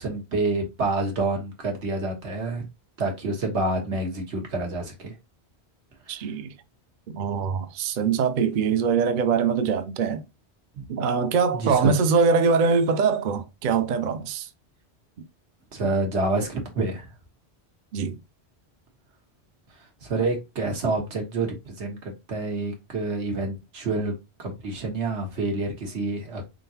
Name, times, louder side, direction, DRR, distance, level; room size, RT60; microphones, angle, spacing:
voice 1, 0.0-2.6 3.0-5.1 6.1-6.2 10.7-10.8 11.5-11.9 15.7-17.1 20.0-24.1 24.4-26.4, right 2 dB, 85° right, 1.6 m, -28 dB
voice 2, 6.1-6.5 7.1-10.2 10.9-14.5 17.9-18.2, right 5 dB, 55° right, 0.6 m, -23 dB
3.8 x 3.7 x 2.8 m
omnidirectional pair, 1.1 m